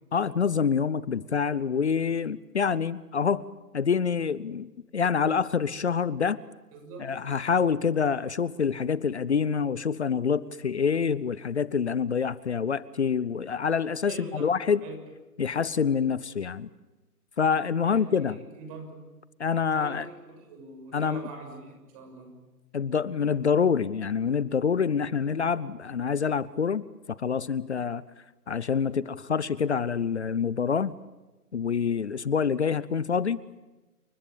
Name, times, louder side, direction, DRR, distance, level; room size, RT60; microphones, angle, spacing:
voice 1, 0.1-3.5 3.7-6.4 7.0-14.8 15.4-16.7 17.4-18.4 19.4-20.1 20.9-21.3 22.7-28.0 28.5-31.0 31.5-33.4, left 6 dB, 45° left, 20 dB, 0.9 m, -26 dB
voice 2, 6.7-7.1 14.1-14.5 14.8-15.0 17.8-18.1 18.5-19.0 19.7-22.4, right 3 dB, 20° right, 4 dB, 6.7 m, -43 dB
29.5 x 24.5 x 7.1 m, 1.1 s
figure-of-eight pair, 145°, 47 cm